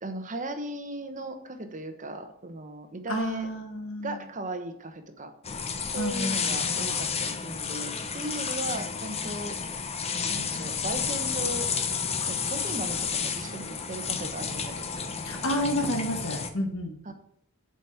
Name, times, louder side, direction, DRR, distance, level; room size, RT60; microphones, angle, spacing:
voice 1, 0.0-3.5 4.0-5.3 5.9-9.6 10.3-11.7 12.3-15.1 17.0-17.1, right 2 dB, 35° right, 7 dB, 1.1 m, -37 dB
voice 2, 3.1-4.1 6.0-6.8 15.2-16.9, left 1 dB, 60° left, 4 dB, 1.3 m, -30 dB
sound 1, 5.4-16.5, left 6 dB, 30° left, 0.8 m, -31 dB
7.9 x 5.2 x 7.0 m, 0.75 s
head